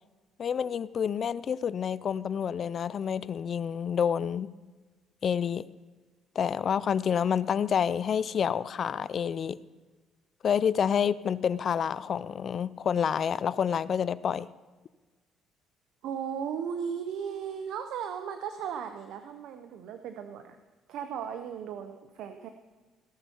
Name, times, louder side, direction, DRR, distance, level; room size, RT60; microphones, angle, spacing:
voice 1, 0.4-4.5 5.2-5.6 6.4-9.6 10.4-14.5, left 7 dB, 50° left, 18 dB, 0.4 m, -28 dB
voice 2, 16.0-20.6 20.9-22.5, right 7 dB, 75° right, 7 dB, 0.7 m, -36 dB
17.5 x 7.0 x 4.5 m, 1.3 s
cardioid pair, 90°, 0 cm